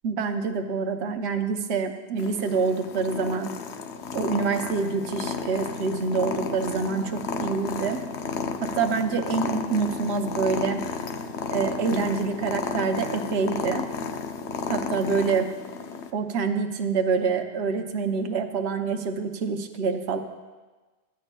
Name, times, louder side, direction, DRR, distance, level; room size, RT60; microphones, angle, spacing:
voice 1, 0.0-3.5 4.1-8.0 8.6-10.9 11.5-13.9 14.7-15.5 16.1-20.2, right 5 dB, 70° right, 6 dB, 0.9 m, -26 dB
Purr, 2.2-16.1, left 5 dB, 75° left, 0.9 m, -33 dB
14.0 x 10.0 x 2.2 m, 1.3 s
omnidirectional pair, 1.2 m